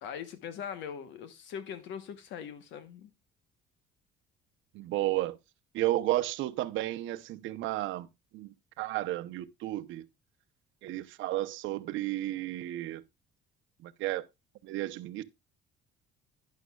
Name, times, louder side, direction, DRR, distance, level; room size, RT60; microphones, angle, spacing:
voice 1, 0.0-3.1, left 8 dB, 70° left, 1.1 m, -41 dB
voice 2, 4.7-5.4 5.7-8.1 8.3-8.5 8.8-10.1 10.8-13.0 13.8-14.3 14.6-15.2, right 15 dB, 75° right, 0.8 m, -32 dB
11.5 x 10.5 x 2.3 m
cardioid pair, 150°, 20 cm